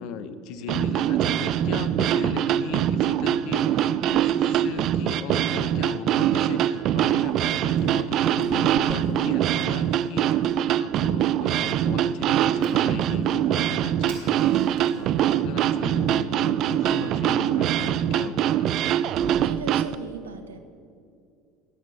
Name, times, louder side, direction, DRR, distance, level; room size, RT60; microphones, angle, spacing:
voice 1, 0.0-18.6 19.0-19.1, left 6 dB, 60° left, 12 dB, 1.2 m, -37 dB
sound 1, 0.7-20.0, right 11 dB, 55° right, 0.5 m, -23 dB
Fire, 6.8-15.2, right 3 dB, 70° right, 3.9 m, -53 dB
voice 2, 19.4-20.6, right 3 dB, 90° right, 8 dB, 1.3 m, -38 dB
21.5 x 8.5 x 7.1 m, 2.4 s
hypercardioid pair, 75°, 0 cm